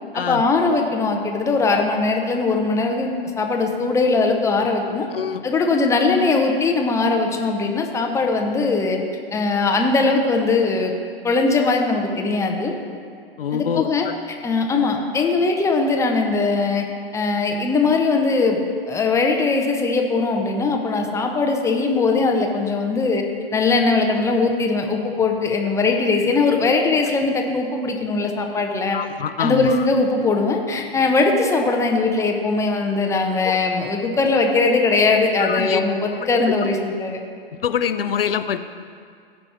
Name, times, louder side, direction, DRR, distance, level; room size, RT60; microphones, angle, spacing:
voice 1, 0.1-5.1 5.4-9.0 9.3-10.9 11.2-12.7 13.5-14.1 14.4-16.8 17.1-18.6 18.9-23.2 23.5-29.0 29.4-37.2, left 3 dB, 10° left, 2 dB, 0.8 m, -20 dB
voice 2, 5.1-5.4 13.4-14.1 28.9-29.9 33.4-33.6 35.4-35.8 37.6-38.6, left 8 dB, 70° left, 11 dB, 0.6 m, -24 dB
15.0 x 5.4 x 4.4 m, 2.2 s
figure-of-eight pair, 100°, 30 cm